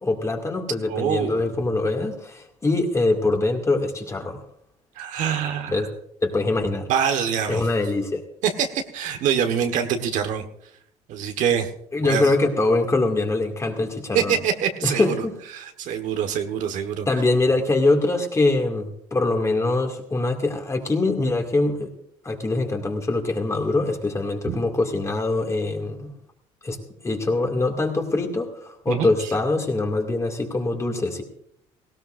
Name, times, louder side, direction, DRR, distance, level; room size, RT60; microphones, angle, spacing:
voice 1, 0.0-4.4 5.7-5.9 6.2-6.9 7.5-8.2 11.9-14.4 14.8-15.4 17.1-21.9 22.2-26.1 26.6-26.8 27.0-31.2, left 2 dB, 20° left, 3 dB, 2.3 m, -23 dB
voice 2, 0.9-1.4 5.0-5.8 6.9-7.6 8.4-10.4 11.1-11.7 12.0-12.2 14.1-15.2 15.5-17.1 24.5-24.6 28.9-29.1, right 8 dB, 70° right, 6 dB, 1.4 m, -24 dB
18.5 x 16.5 x 2.6 m, 0.71 s
cardioid pair, 95°, 13 cm